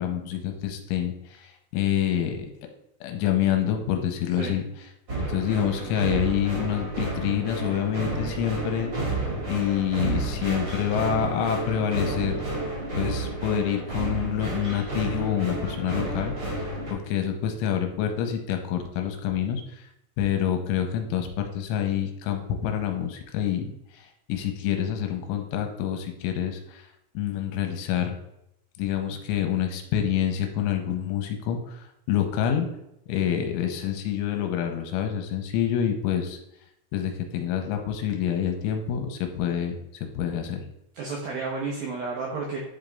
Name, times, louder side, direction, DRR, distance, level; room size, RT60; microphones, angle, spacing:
voice 1, 0.0-2.5 3.0-4.6 5.2-8.9 9.5-12.4 13.0-16.6 16.9-19.8 20.2-23.7 24.3-26.8 27.1-28.1 28.8-31.8 32.1-32.7 33.1-36.4 36.9-40.6, left 9 dB, 90° left, 5 dB, 3.2 m, -27 dB
sound 1, 5.1-16.9, right 2 dB, 45° right, 1.2 m, -31 dB
voice 2, 40.9-42.6, right 4 dB, 80° right, -2 dB, 2.1 m, -31 dB
10.5 x 3.9 x 3.5 m, 0.82 s
omnidirectional pair, 5.7 m